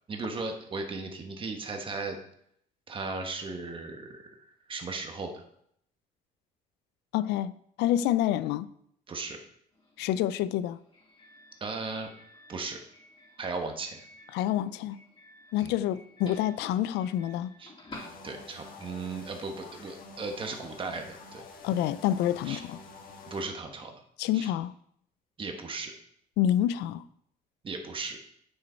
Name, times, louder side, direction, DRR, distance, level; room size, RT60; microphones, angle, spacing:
voice 1, 0.1-2.2 2.9-4.3 4.7-5.4 9.1-9.4 11.6-12.1 12.5-12.8 13.4-14.0 15.6-15.7 17.6-17.7 18.2-21.4 22.4-22.6 23.3-23.9 24.3-24.5 25.4-25.9 27.6-28.2, right 3 dB, 30° right, 1.3 m, -36 dB
voice 2, 7.1-7.5 7.8-8.7 10.0-10.8 14.3-15.0 15.5-17.5 21.6-22.8 24.2-24.7 26.4-27.0, left 12 dB, 85° left, 0.5 m, -27 dB
Doorbell, 9.7-18.8, left 1 dB, 30° left, 3.0 m, -52 dB
sound 1, 17.9-23.4, left 4 dB, 55° left, 1.5 m, -48 dB
8.6 x 6.6 x 4.5 m
cardioid pair, 110°, 17 cm